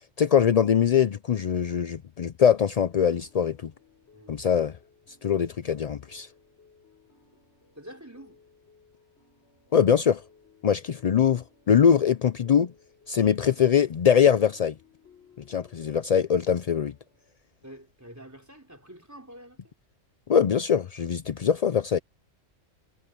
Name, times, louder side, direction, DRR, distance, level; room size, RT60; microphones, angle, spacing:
voice 1, 0.2-3.7 4.3-4.7 5.2-6.3 9.7-10.2 10.6-12.7 13.1-14.7 15.5-16.9 20.3-22.0, left 8 dB, 70° left, 0.3 m, -22 dB
sound 1, 2.4-17.3, left 5 dB, 55° left, 6.4 m, -60 dB
voice 2, 4.1-4.5 7.3-7.4 7.8-8.4 17.6-19.6, right 1 dB, 10° right, 4.1 m, -47 dB
omnidirectional pair, 1.3 m